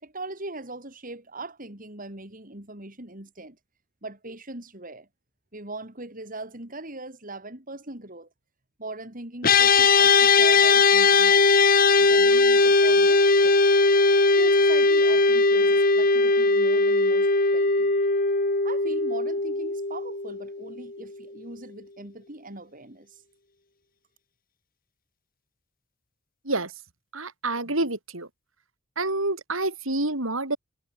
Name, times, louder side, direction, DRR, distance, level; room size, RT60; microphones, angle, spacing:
voice 1, 0.0-3.6 4.0-5.1 5.5-8.3 8.8-11.5 12.0-13.6 14.3-18.0 18.6-23.2, right 2 dB, 40° right, 4.9 m, -40 dB
sound 1, 9.4-20.9, left 3 dB, 45° left, 2.6 m, -19 dB
voice 2, 27.1-28.3 29.0-30.6, right 2 dB, 75° right, 6.2 m, -28 dB
head